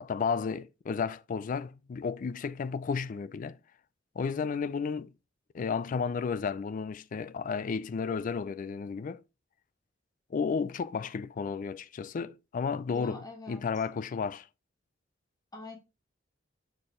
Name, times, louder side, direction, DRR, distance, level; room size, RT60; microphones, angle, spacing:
voice 1, 0.0-3.6 4.2-5.1 5.5-9.2 10.3-14.5, left 5 dB, 45° left, 0.3 m, -33 dB
voice 2, 12.8-13.8 15.5-15.8, left 2 dB, 20° left, 1.4 m, -45 dB
6.8 x 4.2 x 3.6 m
head